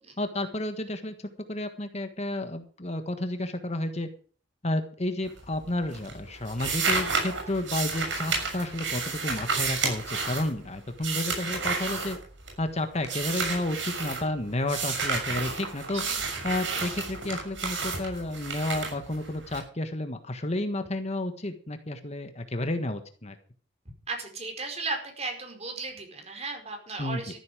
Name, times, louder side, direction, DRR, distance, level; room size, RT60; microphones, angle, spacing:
voice 1, 0.2-1.1 1.5-4.1 4.6-12.2 12.6-16.0 16.4-23.4 27.0-27.2, left 1 dB, 35° left, 8 dB, 1.5 m, -31 dB
sound 1, 5.2-5.7 5.9-12.7 13.0-14.2 14.7-19.6, right 4 dB, 80° right, 6.7 m, -31 dB
voice 2, 15.9-16.3 24.1-27.4, right 3 dB, 35° right, 4 dB, 4.9 m, -35 dB
13.5 x 12.0 x 5.0 m, 0.41 s
head